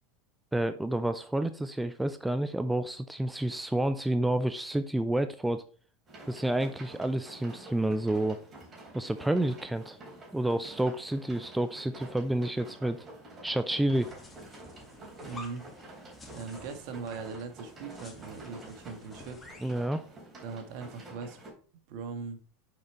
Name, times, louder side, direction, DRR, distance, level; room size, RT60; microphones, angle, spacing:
voice 1, 0.5-5.6 6.3-8.4 8.9-10.0 10.3-13.1 13.4-14.1 19.6-20.0, right 1 dB, 5° right, 10 dB, 0.5 m, -29 dB
sound 1, 6.1-21.5, right 1 dB, 30° right, 3.5 m, -49 dB
sound 2, 14.0-19.8, left 2 dB, 20° left, 2.0 m, -51 dB
voice 2, 15.2-15.7 16.3-19.4 20.4-21.4 21.9-22.4, right 5 dB, 65° right, 8 dB, 1.5 m, -40 dB
6.7 x 5.0 x 4.5 m, 0.42 s
hypercardioid pair, 95°, 0 cm